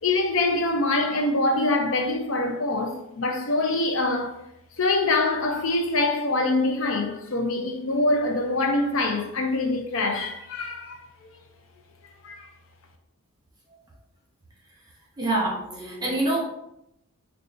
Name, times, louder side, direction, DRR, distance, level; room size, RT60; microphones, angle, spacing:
voice 1, 0.0-4.4 4.8-11.0 12.2-12.5, left 2 dB, 65° left, 0.6 m, -24 dB
voice 2, 15.2-16.4, right 2 dB, 20° right, 0.8 m, -26 dB
4.3 x 3.3 x 2.7 m
head